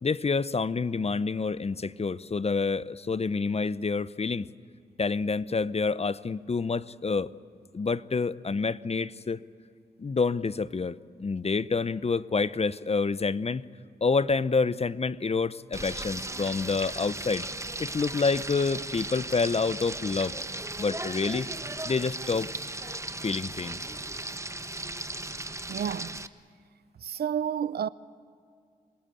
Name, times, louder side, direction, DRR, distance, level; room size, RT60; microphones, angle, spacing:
voice 1, 0.0-4.5 5.0-7.3 7.7-9.4 10.0-13.6 14.0-17.5 17.8-20.3 20.8-21.5 21.8-22.5 23.2-23.8, left 4 dB, 35° left, 0.8 m, -28 dB
Frying (food), 15.7-26.3, right 2 dB, 15° right, 1.1 m, -36 dB
voice 2, 25.7-26.2 27.0-27.9, right 8 dB, 65° right, 0.6 m, -30 dB
26.5 x 18.5 x 9.2 m
supercardioid pair, 45°, 18 cm